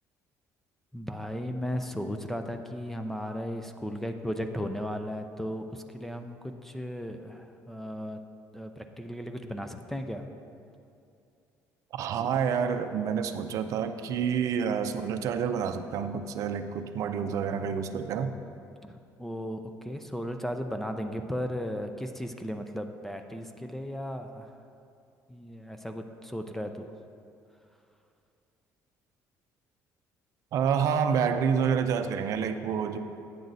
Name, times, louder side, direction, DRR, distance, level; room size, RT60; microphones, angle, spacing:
voice 1, 0.9-8.2 8.5-10.3 18.8-24.5 25.3-26.9, equal, 5° left, 6 dB, 0.4 m, -36 dB
voice 2, 11.9-18.3 30.5-33.0, right 7 dB, 55° right, 8 dB, 0.5 m, -28 dB
9.2 x 7.6 x 4.0 m, 2.6 s
cardioid pair, 145°, 7 cm